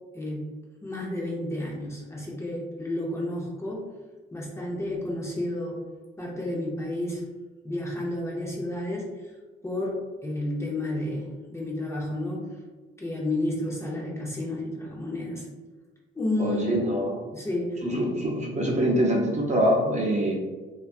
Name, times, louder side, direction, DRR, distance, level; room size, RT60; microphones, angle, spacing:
voice 1, 0.1-0.5 0.8-3.8 4.3-5.9 6.2-7.3 7.6-9.3 9.6-12.6 13.0-15.5 16.1-16.7 17.3-17.8, left 1 dB, 15° left, -3 dB, 0.6 m, -31 dB
voice 2, 16.4-17.2 17.8-20.4, equal, 35° right, -1 dB, 0.6 m, -24 dB
2.7 x 2.3 x 2.5 m, 1.3 s
cardioid pair, 90°, 20 cm